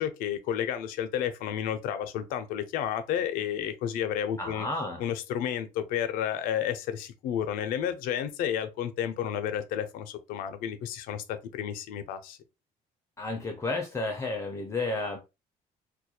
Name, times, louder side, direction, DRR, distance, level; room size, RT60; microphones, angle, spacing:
voice 1, 0.0-4.7 5.0-12.4, left 9 dB, 90° left, 0.4 m, -31 dB
voice 2, 4.4-5.1 13.2-15.2, left 2 dB, 20° left, 0.4 m, -32 dB
2.3 x 2.1 x 2.7 m
cardioid pair, 150°, 14 cm